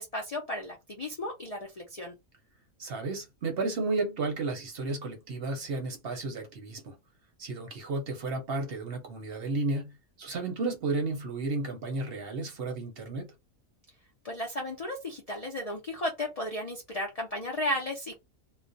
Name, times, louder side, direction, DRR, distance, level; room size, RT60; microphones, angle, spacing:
voice 1, 0.0-2.1 14.2-18.1, left 1 dB, 75° left, 0.3 m, -34 dB
voice 2, 2.8-7.0 7.4-13.3, right 3 dB, 55° right, 0.7 m, -33 dB
2.3 x 2.1 x 2.5 m
omnidirectional pair, 1.4 m